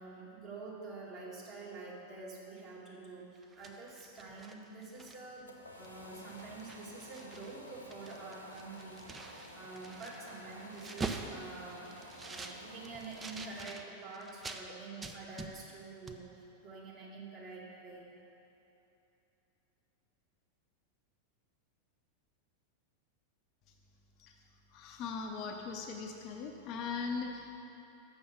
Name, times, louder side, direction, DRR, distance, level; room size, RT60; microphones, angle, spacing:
voice 1, 0.0-18.1, right 3 dB, 35° right, -5 dB, 2.2 m, -47 dB
sound 1, 3.3-5.4 5.8-6.0 6.3-7.5 7.8-14.6 15.0-15.8 16.1-16.2, right 3 dB, 15° right, 0.5 m, -45 dB
sound 2, 5.1-13.7, left 1 dB, 85° left, 0.8 m, -52 dB
voice 2, 24.7-27.6, left 5 dB, 40° left, 2 dB, 0.7 m, -39 dB
7.0 x 6.4 x 6.6 m, 3.0 s
figure-of-eight pair, 90°, 0 cm